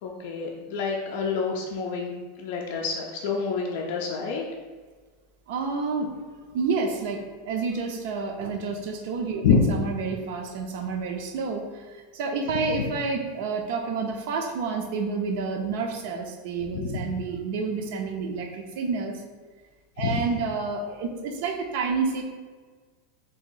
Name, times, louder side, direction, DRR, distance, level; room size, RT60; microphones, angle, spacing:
voice 1, 0.0-2.1 2.4-4.4 9.4-9.7 16.7-17.0 20.0-20.2, left 5 dB, 60° left, 0 dB, 0.4 m, -26 dB
voice 2, 5.5-6.1 6.5-9.4 9.7-19.2 20.0-22.2, right 4 dB, 60° right, 3 dB, 0.4 m, -29 dB
2.8 x 2.5 x 3.7 m, 1.4 s
supercardioid pair, 160°, 0 cm